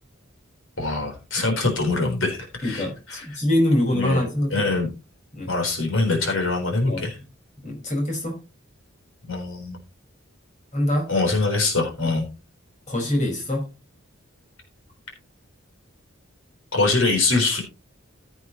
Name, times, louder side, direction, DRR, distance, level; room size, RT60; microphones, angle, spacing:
voice 1, 0.8-3.2 3.9-4.2 4.5-4.9 5.5-7.2 9.3-9.8 11.1-12.2 16.7-17.6, left 3 dB, 70° left, 4.0 m, -23 dB
voice 2, 2.6-4.7 5.3-5.5 6.9-7.1 7.6-8.4 10.7-11.1 12.0-12.1 12.9-13.7, left 1 dB, 35° left, 4.9 m, -24 dB
15.0 x 8.1 x 3.0 m
head